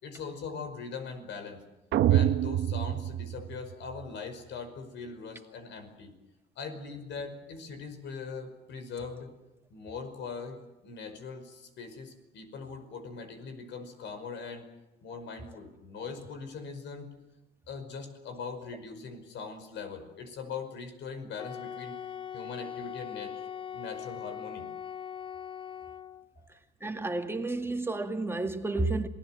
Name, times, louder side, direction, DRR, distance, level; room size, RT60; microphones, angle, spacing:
voice 1, 0.0-1.6 2.0-6.1 6.6-9.3 9.7-14.6 15.0-17.1 17.7-21.9 22.3-24.6 26.4-26.5, left 5 dB, 65° left, 5.3 m, -41 dB
sound 1, 1.9-4.0, right 12 dB, 65° right, 1.1 m, -26 dB
Wind instrument woodwind instrument, 21.4-26.3, left 9 dB, 25° left, 0.9 m, -40 dB
voice 2, 26.5-29.1, right 2 dB, 10° right, 2.1 m, -31 dB
27.5 x 19.0 x 7.7 m
cardioid pair, 110°, 20 cm